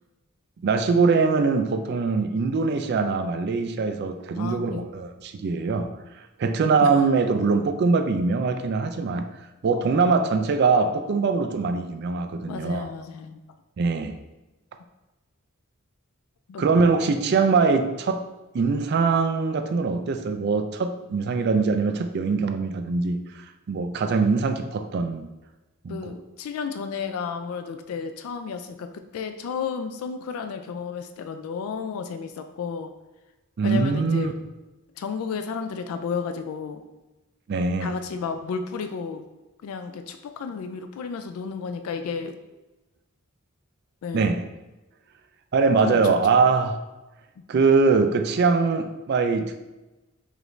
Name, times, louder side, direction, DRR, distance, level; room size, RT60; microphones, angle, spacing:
voice 1, 0.6-5.9 6.4-9.3 9.6-12.9 13.8-14.1 16.6-18.2 18.5-25.3 25.8-26.2 33.6-34.3 37.5-37.9 44.1-44.4 45.5-46.8 47.5-49.6, right 4 dB, 50° right, 8 dB, 0.3 m, -22 dB
voice 2, 4.4-4.9 6.8-6.9 9.9-10.3 12.5-13.4 16.5-16.7 25.9-32.9 33.6-34.3 35.0-36.8 37.8-39.3 39.6-42.4 44.0-44.3 45.8-46.4 47.4-47.5, left 5 dB, 85° left, 8 dB, 0.3 m, -32 dB
4.9 x 2.6 x 3.1 m, 1.0 s
head